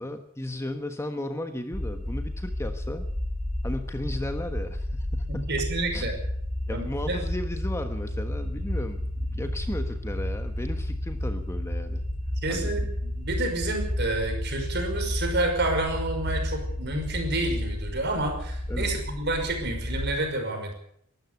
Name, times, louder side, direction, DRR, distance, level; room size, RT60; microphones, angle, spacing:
voice 1, 0.0-3.1 3.6-5.7 5.9-6.1 6.7-12.0 12.5-13.0 18.7-18.9, left 1 dB, 10° left, 7 dB, 1.3 m, -35 dB
sound 1, 1.7-20.2, left 1 dB, 30° right, 6.2 m, -31 dB
voice 2, 5.3-6.1 6.7-7.2 12.4-20.7, right 2 dB, 50° right, 5 dB, 5.7 m, -29 dB
23.5 x 13.0 x 8.3 m, 0.68 s
head